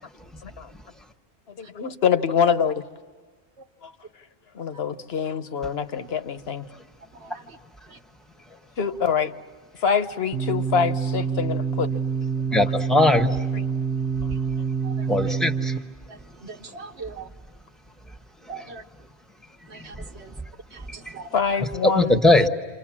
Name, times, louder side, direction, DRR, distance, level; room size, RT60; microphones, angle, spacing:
voice 1, 1.6-2.8 3.8-3.9 4.5-6.7 8.8-9.3 9.8-11.9 13.5-13.6 21.3-22.2, left 6 dB, 65° left, 10 dB, 1.2 m, -25 dB
voice 2, 7.1-7.6 7.9-8.0 14.3-14.4 14.8-15.3 16.1-17.3 18.5-18.8 19.7-20.4 20.7-21.5, right 4 dB, 75° right, 5 dB, 1.4 m, -41 dB
sound 1, 10.3-15.8, right 6 dB, 50° right, 1.4 m, -26 dB
voice 3, 12.5-13.4 15.1-15.7 19.9-20.1 21.1-21.2 21.8-22.5, left 2 dB, ahead, 6 dB, 1.1 m, -19 dB
28.5 x 28.0 x 7.3 m, 1.4 s
omnidirectional pair, 1.1 m